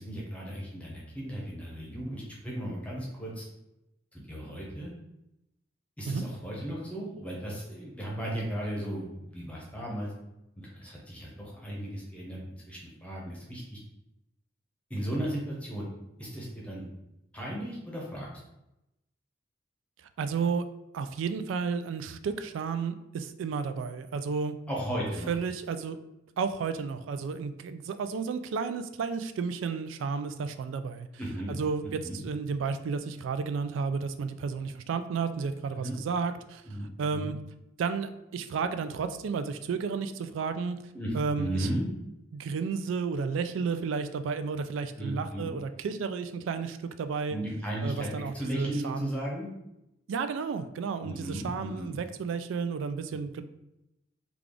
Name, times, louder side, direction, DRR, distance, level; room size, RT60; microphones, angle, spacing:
voice 1, 0.0-3.5 4.1-4.9 6.0-10.1 10.6-12.4 12.7-13.8 14.9-15.9 16.2-16.8 17.3-18.3 24.7-25.3 31.2-31.6 31.8-32.2 35.7-36.0 36.6-37.3 40.9-41.9 45.0-45.5 47.3-49.5 51.0-51.9, right 1 dB, 5° left, -4 dB, 0.8 m, -35 dB
voice 2, 20.2-20.7 20.9-24.5 25.3-26.0 26.4-31.1 31.5-36.6 37.0-37.3 37.8-40.8 41.1-41.7 42.3-47.4 47.8-49.1 50.1-53.4, right 5 dB, 80° right, 10 dB, 0.3 m, -32 dB
3.3 x 2.3 x 3.6 m, 0.89 s
head